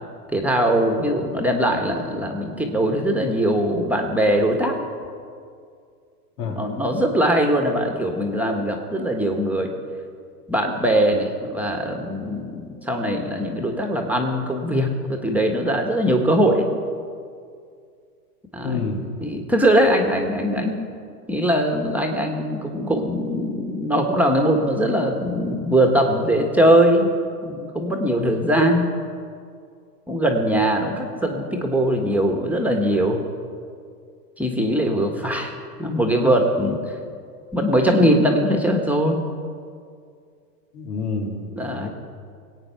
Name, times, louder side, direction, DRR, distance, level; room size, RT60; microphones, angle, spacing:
voice 1, 0.3-4.8 6.6-9.7 10.5-16.7 18.5-20.8 21.3-27.1 27.4-28.9 30.1-33.2 34.4-35.5 35.8-36.8 37.5-39.2 41.6-41.9, right 1 dB, 5° right, 2 dB, 1.3 m, -21 dB
voice 2, 18.6-19.0 40.7-41.4 41.7-41.9, left 4 dB, 80° left, 2 dB, 2.7 m, -27 dB
20.5 x 8.7 x 5.7 m, 2.2 s
hypercardioid pair, 120°, 46 cm